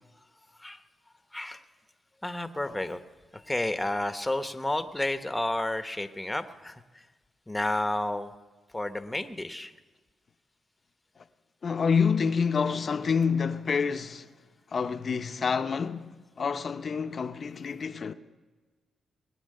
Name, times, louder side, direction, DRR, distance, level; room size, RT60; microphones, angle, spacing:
voice 1, 1.3-1.6 2.2-3.0 3.3-7.0 7.5-8.3 8.7-9.7, left 1 dB, 10° left, 1.0 m, -31 dB
voice 2, 11.6-14.3 14.7-18.1, left 6 dB, 50° left, 0.7 m, -28 dB
20.5 x 9.5 x 6.6 m
cardioid pair, 80°, 0 cm